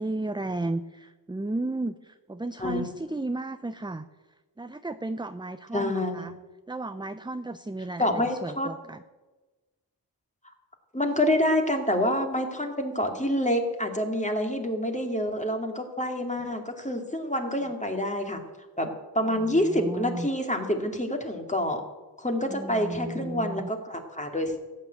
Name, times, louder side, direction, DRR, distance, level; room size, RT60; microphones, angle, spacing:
voice 1, 0.0-4.1 4.6-6.3 6.7-9.0 19.2-20.3 22.5-23.7, right 2 dB, 10° right, 11 dB, 0.6 m, -34 dB
voice 2, 5.7-6.3 8.0-8.7 10.9-18.4 18.8-21.8 22.2-24.6, left 1 dB, 15° left, 4 dB, 2.5 m, -27 dB
14.5 x 8.9 x 8.2 m, 1.2 s
wide cardioid pair, 55°, 43 cm